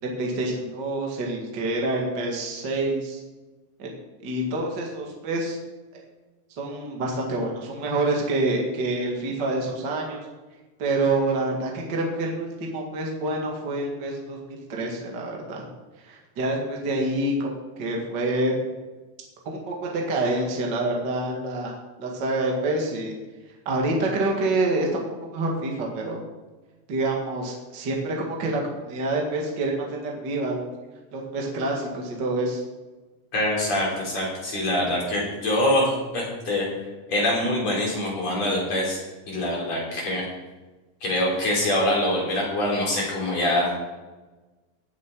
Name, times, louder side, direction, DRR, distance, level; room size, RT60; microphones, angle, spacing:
voice 1, 0.0-3.2 3.8-3.9 4.2-5.6 5.9-6.0 6.6-10.2 10.8-15.7 16.0-18.6 19.4-23.1 23.6-26.2 26.9-30.7 31.1-32.6, right 2 dB, 45° right, -1 dB, 1.5 m, -27 dB
voice 2, 33.3-36.7 37.1-39.0 39.3-40.2 41.0-43.8, left 1 dB, 40° left, -4 dB, 4.4 m, -24 dB
18.0 x 7.5 x 4.7 m, 1.2 s
omnidirectional pair, 4.9 m